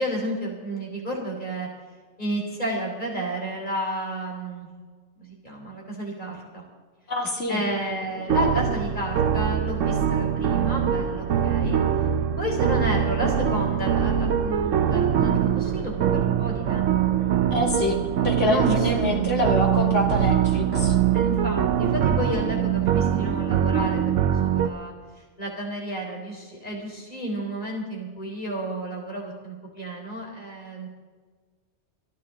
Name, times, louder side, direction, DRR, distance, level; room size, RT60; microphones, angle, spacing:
voice 1, 0.0-1.7 2.2-4.7 5.2-6.6 7.5-11.8 12.4-17.2 18.4-19.1 21.1-24.9 25.4-30.9, equal, 40° left, -1 dB, 4.1 m, -31 dB
voice 2, 7.1-7.6 17.5-18.0 18.2-21.0, left 1 dB, 70° left, 0 dB, 2.7 m, -25 dB
sound 1, 8.3-24.7, right 9 dB, 80° right, 1.1 m, -23 dB
26.0 x 11.0 x 3.8 m, 1.5 s
omnidirectional pair, 1.3 m